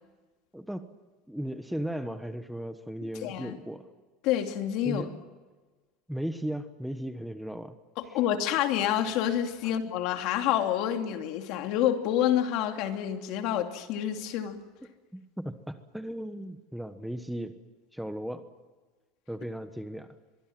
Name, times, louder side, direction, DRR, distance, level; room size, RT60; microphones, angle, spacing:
voice 1, 0.5-0.9 1.3-3.9 4.8-5.2 6.1-7.7 8.1-8.2 9.6-9.8 15.1-17.5 17.9-18.4 19.3-20.1, equal, ahead, 1.2 m, -36 dB
voice 2, 3.2-3.6 4.2-5.0 8.0-14.6, left 11 dB, 60° left, 2.8 m, -28 dB
24.0 x 23.5 x 7.6 m
supercardioid pair, 140°, 0 cm